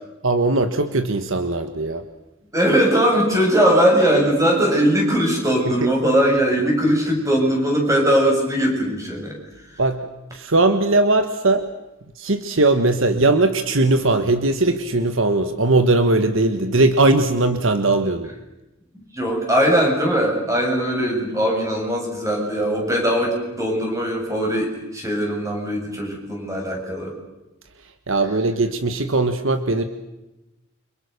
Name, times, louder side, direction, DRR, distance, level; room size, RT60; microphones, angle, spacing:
voice 1, 0.2-2.0 5.8-5.9 9.8-11.7 12.2-18.3 28.1-29.8, right 2 dB, 65° right, 9 dB, 1.5 m, -19 dB
voice 2, 2.5-9.4 19.1-27.2, equal, 15° right, 1 dB, 7.3 m, -20 dB
29.5 x 26.0 x 6.8 m, 0.98 s
head